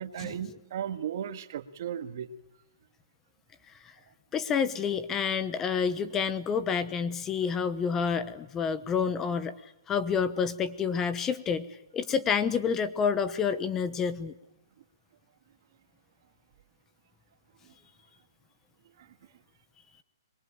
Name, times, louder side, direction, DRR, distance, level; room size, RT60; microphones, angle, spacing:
voice 1, 0.0-2.3, right 9 dB, 50° right, 9 dB, 1.8 m, -35 dB
voice 2, 4.3-11.7 11.9-14.3, left 6 dB, 15° left, 13 dB, 1.0 m, -29 dB
23.5 x 22.5 x 8.9 m, 0.86 s
hypercardioid pair, 150°, 2 cm